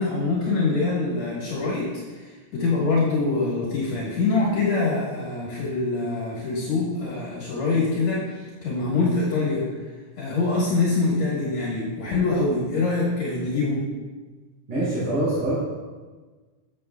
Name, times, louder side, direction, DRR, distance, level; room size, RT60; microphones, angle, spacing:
voice 1, 0.0-1.9 2.2-9.6 10.2-13.8, left 3 dB, 65° left, -6 dB, 2.5 m, -24 dB
voice 2, 14.7-15.5, right 1 dB, 70° right, -12 dB, 4.2 m, -24 dB
11.5 x 7.5 x 2.3 m, 1.4 s
omnidirectional pair, 3.6 m